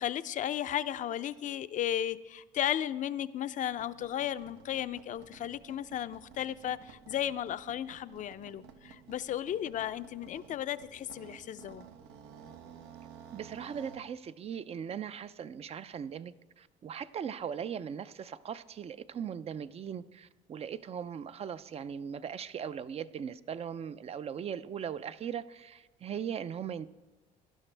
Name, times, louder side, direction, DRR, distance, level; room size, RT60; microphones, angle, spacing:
voice 1, 0.0-11.8, left 11 dB, 50° left, 13 dB, 0.5 m, -35 dB
sound 1, 3.7-14.1, right 7 dB, 90° right, 0.8 m, -53 dB
voice 2, 13.3-26.9, right 8 dB, 35° right, 15 dB, 0.4 m, -39 dB
17.0 x 12.0 x 3.3 m, 1.2 s
cardioid pair, 110°, 17 cm